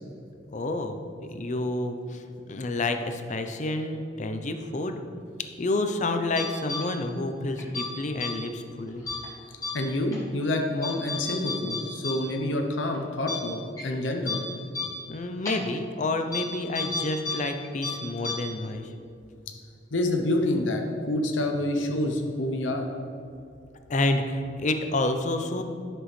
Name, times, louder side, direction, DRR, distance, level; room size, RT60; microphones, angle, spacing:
voice 1, 0.5-5.0 5.6-9.0 15.1-18.9 23.9-25.6, left 2 dB, 40° left, 7 dB, 0.5 m, -29 dB
sound 1, 6.4-6.8 7.6-7.9 8.2-8.3 9.1-9.3 9.6-9.7 10.1-10.2 10.8-12.1 12.4-12.5 12.9-13.0 13.3-13.4 13.8-13.9 14.3-14.4 14.7-14.9 15.5-15.6 16.3-16.4 16.8-17.4 17.6-17.9 18.2-18.3, left 4 dB, 20° left, 1.9 m, -31 dB
voice 2, 9.7-14.4 19.9-22.9, left 1 dB, 85° left, 3 dB, 0.7 m, -27 dB
11.0 x 6.1 x 3.2 m, 2.5 s
head